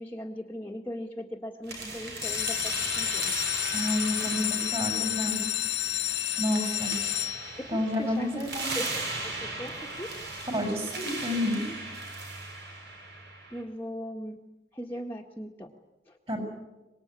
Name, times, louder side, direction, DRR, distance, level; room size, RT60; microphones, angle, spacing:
voice 1, 0.0-3.3 7.7-8.4 8.7-8.9 9.6-9.7 10.0-10.1 13.5-14.4 14.7-15.7 16.1-16.2, equal, 10° left, -1 dB, 1.6 m, -38 dB
sound 1, 1.7-13.6, right 3 dB, 70° right, 6.4 m, -37 dB
sound 2, 2.1-7.8 8.5-8.9 9.3-9.4 9.7-9.8 10.2-10.3, left 15 dB, 80° left, 0.9 m, -31 dB
voice 2, 3.7-5.4 6.4-7.0 7.7-8.7 10.5-11.6 16.3-16.4, left 1 dB, 30° right, 3 dB, 6.8 m, -30 dB
25.0 x 20.5 x 9.8 m, 1.1 s
head